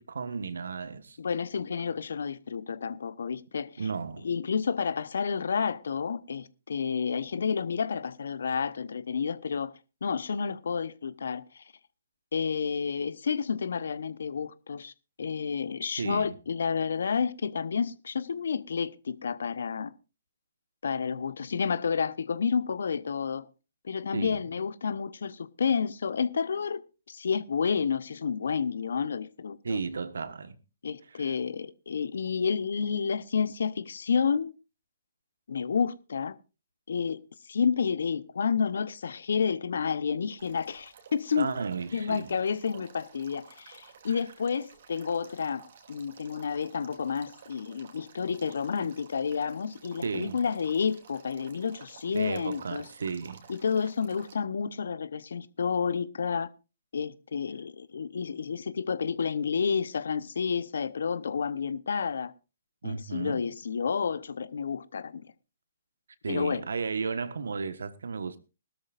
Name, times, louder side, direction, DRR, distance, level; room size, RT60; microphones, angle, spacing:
voice 1, 0.0-1.2 3.8-4.3 16.0-16.3 24.1-24.4 29.6-30.6 31.1-31.3 41.4-42.3 44.1-44.2 50.0-50.4 52.1-53.4 62.8-63.4 66.2-68.4, right 5 dB, 75° right, 1.3 m, -34 dB
voice 2, 1.2-3.7 4.2-9.7 10.0-11.6 12.3-14.9 15.2-19.9 20.8-23.5 23.8-29.8 30.8-34.5 35.5-36.3 36.9-37.2 37.5-41.5 41.9-45.6 45.9-52.9 53.5-56.5 56.9-62.3 62.8-65.3 66.3-66.6, left 6 dB, 70° left, 0.8 m, -30 dB
Male speech man speaking / Stream / Trickle dribble, 40.4-54.3, right 6 dB, 55° right, 2.7 m, -54 dB
19.5 x 13.0 x 2.5 m
figure-of-eight pair, 135°, 0 cm